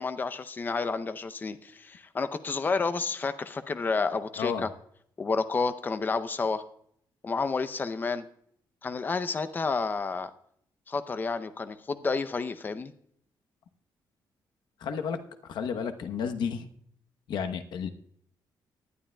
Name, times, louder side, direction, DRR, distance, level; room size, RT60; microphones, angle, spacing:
voice 1, 0.0-4.7 5.2-6.6 7.2-8.2 8.8-10.3 10.9-12.9, left 4 dB, 25° left, 11 dB, 0.6 m, -30 dB
voice 2, 14.8-15.2 15.5-16.7 17.3-17.9, left 6 dB, 70° left, 7 dB, 0.9 m, -31 dB
19.0 x 11.0 x 2.3 m, 0.66 s
cardioid pair, 170°, 8 cm